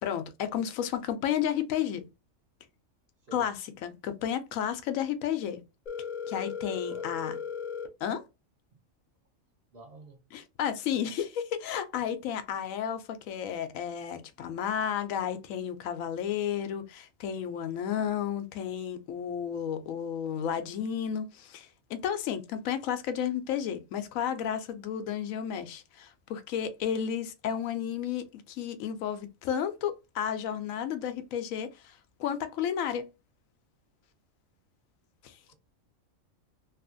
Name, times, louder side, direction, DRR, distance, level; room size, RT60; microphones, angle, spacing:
voice 1, 0.0-2.0 3.3-3.5 3.8-5.6 6.3-7.4 8.0-8.2 10.3-33.0 35.2-35.3, left 9 dB, 85° left, 1.0 m, -32 dB
Telephone, 5.9-7.9, left 7 dB, 70° left, 0.4 m, -36 dB
voice 2, 6.9-7.2 9.7-10.2 35.5-35.6, right 2 dB, 55° right, 1.0 m, -50 dB
2.9 x 2.4 x 2.5 m
omnidirectional pair, 1.4 m